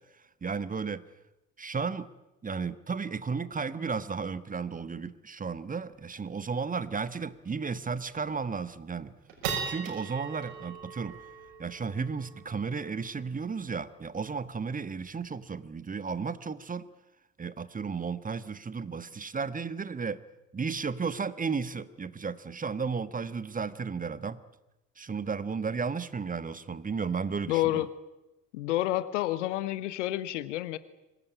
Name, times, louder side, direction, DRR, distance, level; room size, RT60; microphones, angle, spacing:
voice 1, 0.4-1.0 1.6-2.1 2.4-9.1 9.7-11.2 11.6-16.9 17.4-20.2 20.5-24.4 25.0-27.9, right 5 dB, 20° right, 14 dB, 1.3 m, -34 dB
sound 1, 5.9-6.0 6.3-6.4 6.8-7.0 7.5-7.6 8.2-8.5 9.0-15.5, right 6 dB, 60° right, 6.3 m, -41 dB
voice 2, 27.5-27.9 28.5-30.8, left 15 dB, 70° left, 15 dB, 1.3 m, -29 dB
25.0 x 19.0 x 9.8 m, 0.99 s
figure-of-eight pair, 50°, 38 cm